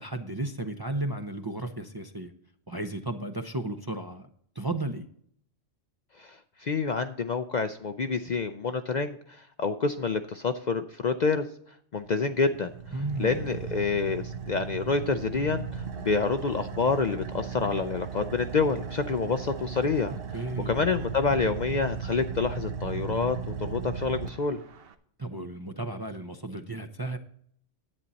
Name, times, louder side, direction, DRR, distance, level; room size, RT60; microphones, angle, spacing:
voice 1, 0.0-2.3 2.7-4.3 4.5-5.0 12.9-13.4 20.1-20.8 25.2-27.2, right 2 dB, 25° right, 7 dB, 0.5 m, -34 dB
voice 2, 6.2-11.5 11.9-12.7 13.2-20.1 20.7-24.6, left 4 dB, 50° left, 8 dB, 0.5 m, -28 dB
Car / Idling, 12.0-24.9, right 6 dB, 60° right, 1.0 m, -36 dB
11.0 x 8.7 x 4.1 m, 0.62 s
omnidirectional pair, 1.2 m